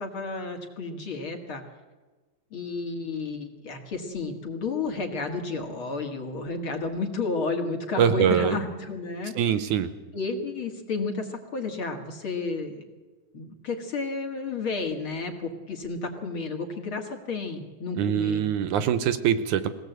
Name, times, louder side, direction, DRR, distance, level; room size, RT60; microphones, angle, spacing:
voice 1, 0.0-1.6 2.5-9.7 10.1-12.9 13.3-18.5, left 4 dB, 45° left, 4 dB, 2.4 m, -32 dB
voice 2, 8.0-8.6 9.4-9.9 18.0-19.7, right 9 dB, 75° right, 12 dB, 2.2 m, -23 dB
22.5 x 17.0 x 8.1 m, 1.3 s
omnidirectional pair, 3.8 m